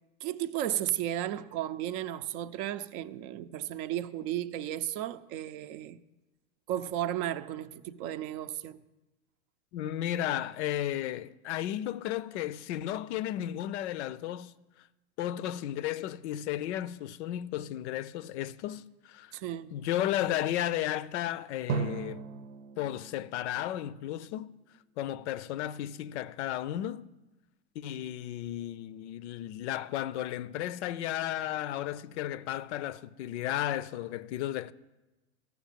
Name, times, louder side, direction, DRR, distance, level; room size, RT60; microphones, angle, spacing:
voice 1, 0.2-6.0 6.7-8.8 19.3-19.8, right 12 dB, 45° right, 0.5 m, -34 dB
voice 2, 9.7-14.5 15.2-19.4 19.7-22.2 22.8-24.5 25.0-27.1 27.8-34.7, left 12 dB, 65° left, 0.5 m, -34 dB
Drum, 21.7-24.6, right 6 dB, 85° right, 0.9 m, -38 dB
14.0 x 6.0 x 7.4 m
supercardioid pair, 140°, 37 cm